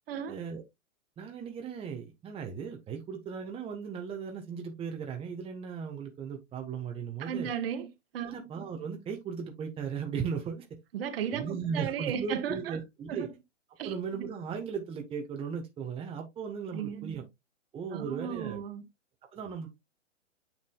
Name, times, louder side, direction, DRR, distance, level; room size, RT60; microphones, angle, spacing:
voice 1, 0.3-0.6 1.2-7.5 8.3-10.6 11.3-13.3 13.8-17.2 17.7-18.6 19.3-19.8, right 6 dB, 15° right, 1.3 m, -37 dB
voice 2, 7.2-8.4 10.9-12.8 13.1-13.3 13.8-13.9 14.2-14.3 16.7-17.2 17.9-18.9, right 8 dB, 50° right, 1.7 m, -35 dB
9.2 x 5.9 x 2.4 m
figure-of-eight pair, 120°, 38 cm